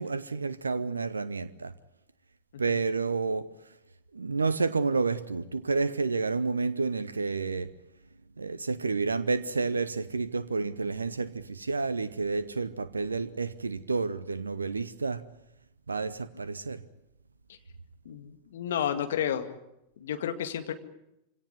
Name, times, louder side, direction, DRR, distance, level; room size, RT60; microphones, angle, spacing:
voice 1, 0.0-1.7 2.6-3.5 4.1-7.7 8.4-15.2 15.9-16.8, right 4 dB, 75° right, 0.8 m, -30 dB
voice 2, 18.1-19.5 20.0-20.7, left 9 dB, 60° left, 2.1 m, -31 dB
25.5 x 17.5 x 9.7 m
figure-of-eight pair, 90°, 0 cm